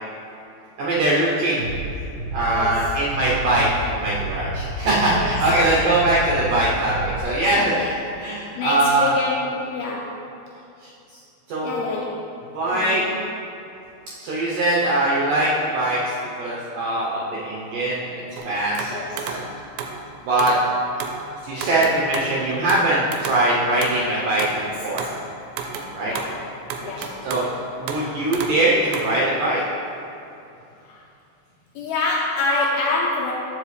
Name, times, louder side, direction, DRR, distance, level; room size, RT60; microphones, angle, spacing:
voice 1, 0.8-1.7 2.3-7.9 8.2-9.2 11.5-11.8 12.5-13.0 14.2-16.0 16.4-18.9 19.2-19.4 20.2-20.5 21.4-24.4 24.8-25.1 25.9-26.1 27.2-27.5 27.8-29.6, right 1 dB, 75° right, -6 dB, 2.0 m, -21 dB
Bass drum, 1.6-7.2, right 2 dB, 55° right, 1.3 m, -30 dB
voice 2, 2.5-3.0 5.1-5.3 7.6-7.9 8.6-10.2 11.6-12.2 12.7-13.2 18.9-19.4 24.6-25.1 26.1-26.4 26.8-27.1 30.8-31.0 31.8-33.3, left 3 dB, 80° left, -3 dB, 2.3 m, -27 dB
sound 1, 18.4-20.0 20.4-20.6 21.0-21.2 21.6-22.4 22.7-24.6 25.0-25.3 25.6-26.4 26.7-27.5 27.9-28.1 28.3-28.6 28.9-29.1, right 6 dB, 90° right, 2.8 m, -32 dB
13.5 x 5.0 x 3.2 m, 2.7 s
omnidirectional pair, 5.0 m